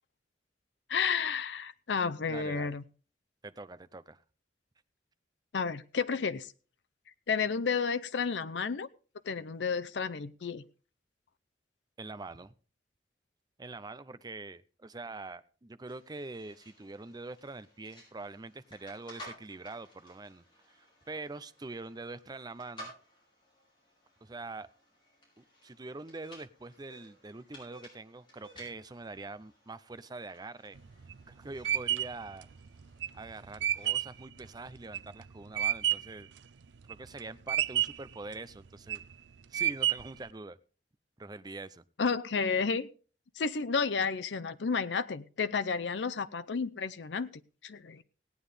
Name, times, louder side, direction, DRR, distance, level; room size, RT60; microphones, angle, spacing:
voice 1, 0.9-2.8 5.5-6.5 7.3-8.9 9.3-10.6 42.0-42.9 43.4-47.3 47.6-48.0, left 5 dB, 85° left, 14 dB, 0.6 m, -31 dB
voice 2, 2.3-2.8 3.4-4.2 12.0-12.5 13.6-22.9 24.2-24.7 25.4-30.8 31.3-32.5 33.1-36.3 36.9-39.0 39.5-40.6 41.2-41.8, right 3 dB, 25° right, 14 dB, 0.6 m, -44 dB
sound 1, 15.9-34.2, equal, 30° left, 5.9 m, -56 dB
sound 2, 30.8-36.2 36.6-37.2 37.5-38.1 38.6-39.1 39.5-40.2, right 11 dB, 90° right, 0.5 m, -30 dB
17.5 x 9.3 x 3.3 m, 0.38 s
head